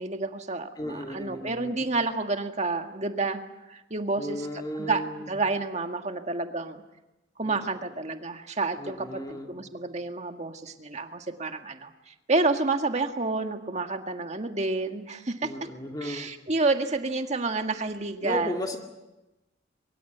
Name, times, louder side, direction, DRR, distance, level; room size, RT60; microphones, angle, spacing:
voice 1, 0.0-3.4 3.7-4.5 4.7-5.0 5.3-6.8 7.4-15.5 16.0-18.8, right 3 dB, 40° right, 6 dB, 1.8 m, -29 dB
voice 2, 0.8-1.9 4.1-5.3 7.4-7.7 8.8-9.7 15.4-16.3 18.2-18.8, left 1 dB, 20° left, 3 dB, 2.1 m, -35 dB
23.5 x 23.0 x 8.1 m, 1.0 s
head